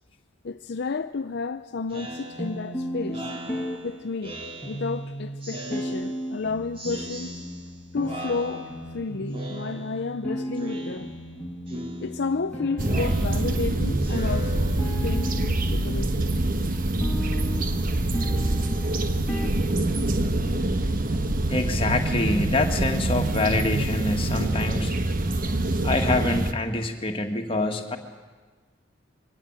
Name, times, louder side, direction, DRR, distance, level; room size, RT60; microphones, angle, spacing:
voice 1, 0.4-3.3 3.8-4.3 4.7-7.4 7.9-8.7 8.9-11.1 12.0-16.3, left 4 dB, 60° left, 0.6 m, -31 dB
Speech synthesizer, 1.9-5.0 5.4-6.4 6.8-7.8 8.1-9.0 9.3-10.2 10.6-11.4 11.7-15.2, right 1 dB, 30° right, 3.2 m, -40 dB
sound 1, 2.4-20.4, equal, 10° left, 2.5 m, -35 dB
sound 2, 12.8-26.5, right 1 dB, 45° right, 1.2 m, -25 dB
voice 2, 21.5-25.0 25.8-28.0, left 2 dB, 30° left, 2.0 m, -26 dB
23.0 x 17.0 x 9.1 m
head